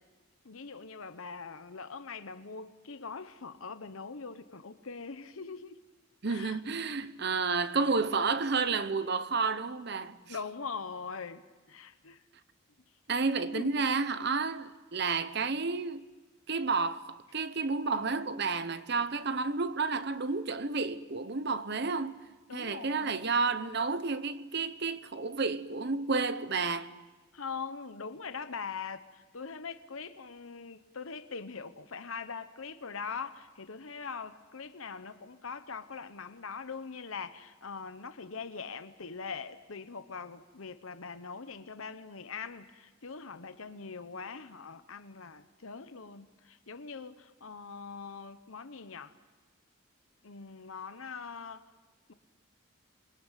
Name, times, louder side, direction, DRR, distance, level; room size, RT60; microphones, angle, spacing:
voice 1, 0.4-5.8 6.2-6.6 10.3-12.2 13.5-13.8 22.5-23.2 27.3-49.1 50.2-51.7, left 5 dB, 75° left, 1.0 m, -42 dB
voice 2, 6.2-10.4 13.1-16.0 16.5-22.2 22.5-26.9, right 4 dB, 50° right, 1.0 m, -31 dB
27.0 x 22.5 x 9.2 m
head